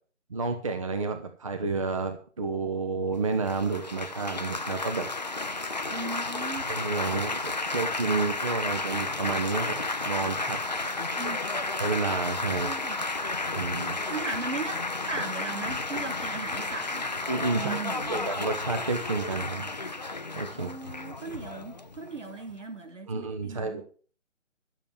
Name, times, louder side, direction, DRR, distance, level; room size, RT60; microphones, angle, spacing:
voice 1, 0.3-5.1 6.7-10.6 11.8-12.8 13.5-14.0 17.3-17.8 18.1-19.7 20.4-20.7 23.1-23.8, right 4 dB, 25° right, 6 dB, 0.9 m, -30 dB
Laughter / Applause / Chatter, 3.5-22.6, left 3 dB, 35° left, 0.5 m, -32 dB
voice 2, 5.9-6.7 11.2-11.4 12.6-13.0 14.1-17.2 17.5-18.3 20.6-23.8, right 4 dB, 70° right, 7 dB, 2.8 m, -37 dB
12.0 x 7.3 x 7.1 m, 0.42 s
figure-of-eight pair, 160°, 38 cm